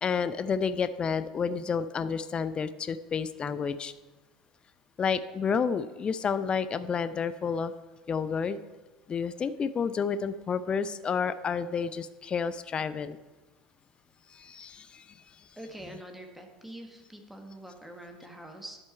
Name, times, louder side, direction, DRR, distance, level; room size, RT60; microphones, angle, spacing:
voice 1, 0.0-3.9 5.0-7.7 8.1-8.6 9.1-13.2 14.4-15.0, left 6 dB, 25° left, 13 dB, 0.6 m, -30 dB
voice 2, 15.6-18.8, right 1 dB, 5° right, 3 dB, 1.6 m, -45 dB
10.5 x 7.6 x 4.4 m, 1.2 s
figure-of-eight pair, 75°, 4 cm